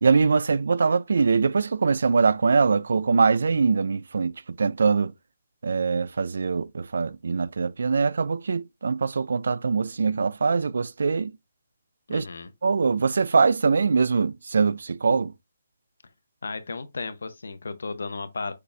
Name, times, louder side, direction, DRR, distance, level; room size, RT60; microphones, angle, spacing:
voice 1, 0.0-5.1 5.6-11.3 12.1-12.3 12.6-15.3, right 5 dB, 65° right, 0.3 m, -23 dB
voice 2, 12.1-12.5 16.4-18.5, left 4 dB, 80° left, 0.8 m, -34 dB
6.6 x 2.4 x 3.3 m
hypercardioid pair, 170°, 0 cm